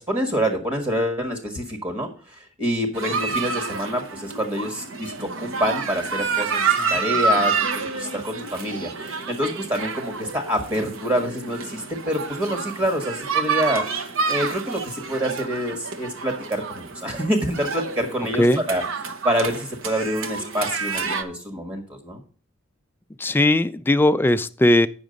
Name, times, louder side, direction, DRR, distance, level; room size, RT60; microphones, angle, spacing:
voice 1, 0.0-18.8 19.2-22.2, equal, 25° right, 2 dB, 1.5 m, -27 dB
sound 1, 2.9-21.2, right 4 dB, 75° right, 1.0 m, -28 dB
voice 2, 18.3-18.6 23.2-24.9, left 1 dB, 10° left, 12 dB, 0.3 m, -19 dB
9.2 x 6.1 x 5.2 m, 0.41 s
head